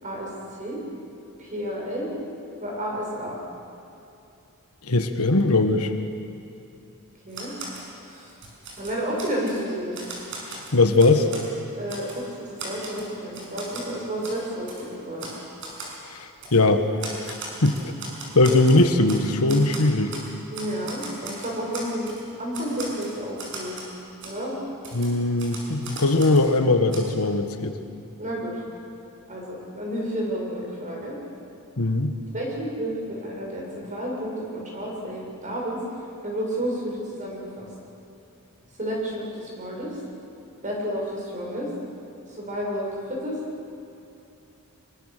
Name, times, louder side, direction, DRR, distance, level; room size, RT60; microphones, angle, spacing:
voice 1, 1.4-2.1 2.6-3.4 7.3-7.5 8.1-8.3 8.8-10.0 11.7-15.3 20.5-22.1 22.4-23.9 24.2-24.5 28.2-28.5 29.3-31.2 32.3-35.8 36.2-37.7 38.8-40.0 40.6-41.7 42.3-43.4, equal, 35° right, -2 dB, 6.9 m, -31 dB
voice 2, 4.8-5.9 10.5-11.3 16.1-16.9 17.6-17.9 18.3-20.2 24.9-27.8 31.8-32.1, left 2 dB, 80° left, 7 dB, 1.6 m, -20 dB
Typewriter, 7.3-7.9 8.3-9.6 9.9-11.5 11.9-12.2 12.6-13.9 14.2-14.4 14.7-14.8 15.2-15.4 15.6-15.9 16.4-16.6 17.0-19.2 19.5-20.3 20.5-22.2 22.5-23.9 24.2-24.3 24.8-26.5 26.9-27.0, right 3 dB, 60° right, 6.3 m, -38 dB
26.5 x 23.0 x 6.8 m, 2.8 s
head